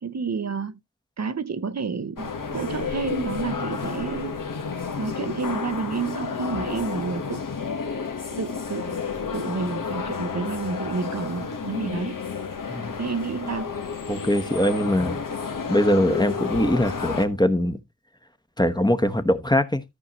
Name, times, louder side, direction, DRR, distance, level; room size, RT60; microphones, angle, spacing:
voice 1, 0.0-0.8 1.2-4.4 5.0-7.5 8.3-9.0 9.3-12.2 13.0-13.7, right 5 dB, 55° right, 0.7 m, -30 dB
sound 1, 2.2-17.2, left 5 dB, 75° left, 1.3 m, -31 dB
voice 2, 14.1-15.2 15.7-17.8 18.6-19.8, left 1 dB, 15° left, 1.1 m, -22 dB
13.5 x 5.4 x 3.0 m
wide cardioid pair, 70°, 33 cm